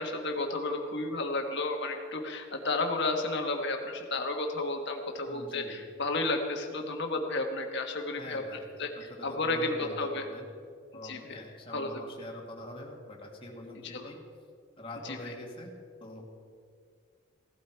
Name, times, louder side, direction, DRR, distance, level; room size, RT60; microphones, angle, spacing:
voice 1, 0.0-8.4 8.8-8.9 9.2-10.2 11.0-11.3 11.7-12.0 13.8-14.1 15.0-15.3, left 2 dB, 60° left, 3 dB, 1.5 m, -32 dB
voice 2, 5.2-5.8 8.1-10.5 10.9-14.2 14.8-15.7 16.0-16.3, left 1 dB, 25° left, -1 dB, 2.0 m, -44 dB
16.5 x 12.0 x 4.6 m, 2.2 s
head